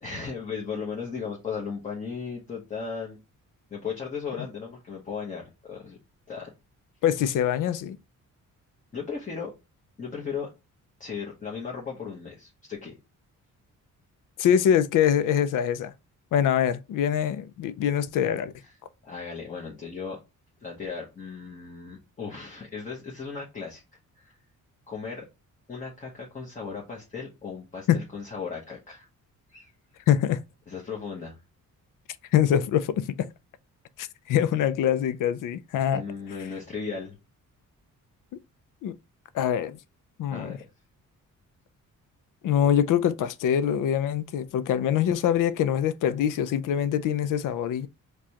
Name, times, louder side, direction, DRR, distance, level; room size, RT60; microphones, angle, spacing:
voice 1, 0.0-3.2 3.7-6.0 6.3-6.5 8.9-9.5 10.0-10.5 11.0-13.0 19.0-20.2 20.6-23.8 24.1-24.3 24.9-25.3 25.7-29.1 29.5-29.7 30.7-31.4 35.7-37.2 40.3-40.6, left 5 dB, 25° left, 0.9 m, -36 dB
voice 2, 7.0-8.0 14.4-15.9 16.3-18.5 27.9-28.0 30.1-30.4 32.3-33.3 34.0-36.0 38.8-39.0 39.3-39.8 40.2-40.6 42.4-47.9, left 9 dB, 80° left, 0.5 m, -24 dB
4.7 x 2.3 x 2.8 m
cardioid pair, 145°, 32 cm